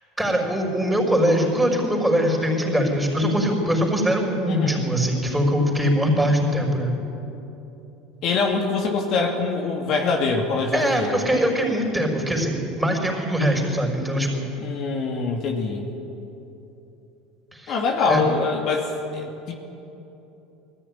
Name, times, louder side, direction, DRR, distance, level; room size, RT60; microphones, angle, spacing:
voice 1, 0.2-6.9 10.7-14.5 17.5-17.8 18.0-18.2, equal, 5° right, 0 dB, 5.5 m, -22 dB
voice 2, 4.5-4.8 8.2-11.2 14.6-15.8 17.7-19.5, left 4 dB, 55° left, 1 dB, 2.5 m, -24 dB
19.5 x 14.5 x 9.9 m, 3.0 s
supercardioid pair, 95°, 0 cm